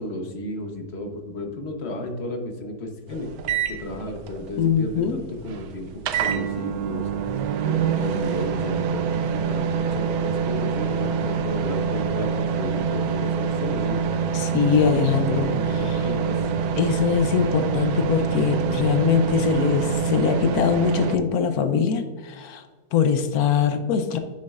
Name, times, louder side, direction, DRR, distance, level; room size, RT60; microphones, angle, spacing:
voice 1, 0.0-3.3 3.7-5.9 6.2-7.1 7.6-14.0 14.8-16.5, left 1 dB, 45° left, 3 dB, 1.2 m, -33 dB
sound 1, 3.1-21.2, right 6 dB, 75° right, 1.1 m, -26 dB
voice 2, 4.6-5.2 14.3-15.6 15.8-16.0 16.8-22.6 22.9-24.2, left 7 dB, 70° left, 8 dB, 1.1 m, -22 dB
9.6 x 6.4 x 2.4 m, 1.4 s
omnidirectional pair, 1.7 m